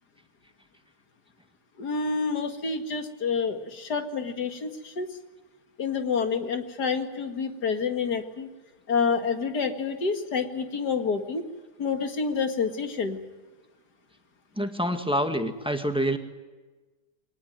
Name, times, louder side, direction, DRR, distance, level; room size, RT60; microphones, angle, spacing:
voice 1, 1.8-5.1 5.8-8.5 8.9-11.4 11.8-13.2, left 5 dB, 70° left, 6 dB, 2.4 m, -28 dB
voice 2, 14.6-16.2, equal, 5° right, 6 dB, 1.6 m, -26 dB
23.0 x 18.5 x 9.3 m, 1.3 s
omnidirectional pair, 1.8 m